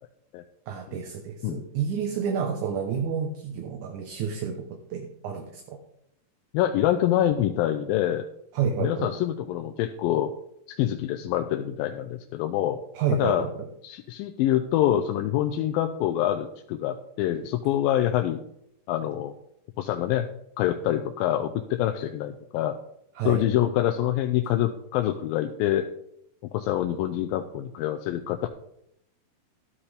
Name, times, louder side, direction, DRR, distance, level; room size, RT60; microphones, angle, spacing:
voice 1, 0.7-4.6 4.9-5.8 8.5-9.1 13.0-13.5 23.2-23.4, right 7 dB, 70° right, 3 dB, 2.3 m, -29 dB
voice 2, 6.5-8.3 8.8-10.3 10.7-12.8 13.1-13.5 13.8-18.4 18.9-19.3 19.8-20.3 20.6-22.8 23.3-25.9 26.5-28.5, left 12 dB, 85° left, 6 dB, 2.4 m, -25 dB
13.0 x 9.9 x 3.5 m, 0.75 s
omnidirectional pair, 4.1 m